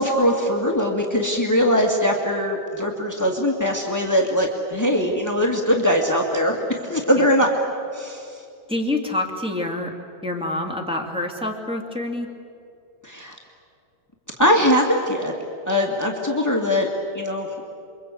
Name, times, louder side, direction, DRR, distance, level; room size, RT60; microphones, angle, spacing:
voice 1, 0.0-7.5 7.9-8.4 13.0-13.3 14.4-15.3 15.7-16.9 17.1-17.5, equal, 15° left, 1 dB, 0.7 m, -21 dB
voice 2, 8.7-9.9 10.2-12.3, left 2 dB, ahead, 0 dB, 1.6 m, -27 dB
28.5 x 24.0 x 8.5 m, 2.5 s
omnidirectional pair, 4.3 m